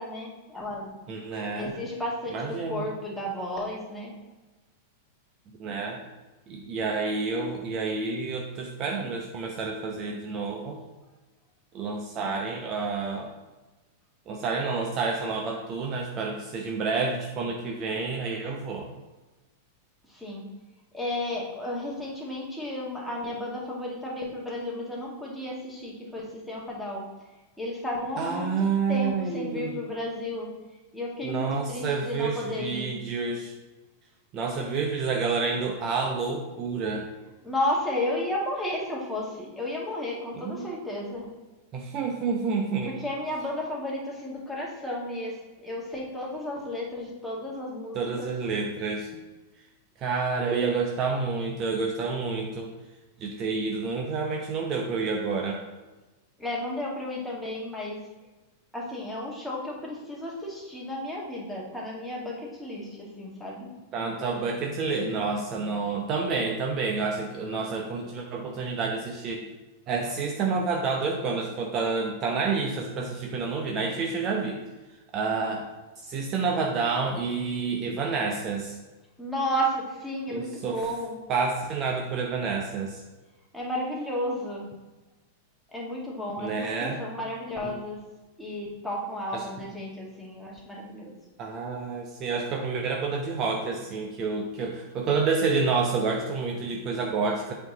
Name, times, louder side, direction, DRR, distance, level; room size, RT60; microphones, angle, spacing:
voice 1, 0.0-0.9 1.5-4.1 20.1-20.5 20.9-27.0 27.6-30.5 30.9-33.0 37.4-41.3 42.9-48.3 56.4-58.0 58.7-63.7 79.2-81.2 83.5-84.7 85.7-88.0 88.4-91.1, left 1 dB, 5° left, -4 dB, 2.1 m, -33 dB
voice 2, 1.1-1.7 2.3-2.9 5.6-6.0 6.5-10.8 11.7-13.3 14.3-18.9 28.2-29.8 31.2-33.5 34.3-37.1 40.4-40.7 41.7-42.9 47.9-49.1 50.0-52.7 53.2-55.6 63.9-69.4 69.9-74.6 75.1-75.6 76.0-78.8 80.3-80.9 81.3-83.0 86.4-87.0 87.6-87.7 89.3-89.4 91.4-97.5, right 4 dB, 35° right, 1 dB, 0.8 m, -29 dB
7.9 x 4.4 x 4.0 m, 1.2 s
figure-of-eight pair, 95°, 0 cm